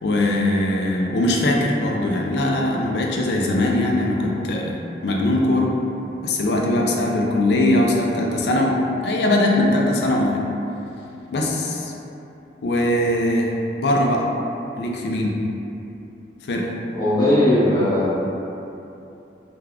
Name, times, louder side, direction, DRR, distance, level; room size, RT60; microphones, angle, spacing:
voice 1, 0.0-4.7 5.0-5.7 6.2-10.4 11.3-11.9 12.6-14.3 14.8-15.4 16.5-16.7, left 1 dB, 65° left, -1 dB, 0.3 m, -21 dB
voice 2, 16.9-18.1, left 1 dB, 25° left, -11 dB, 0.7 m, -18 dB
3.3 x 2.2 x 2.3 m, 2.9 s
head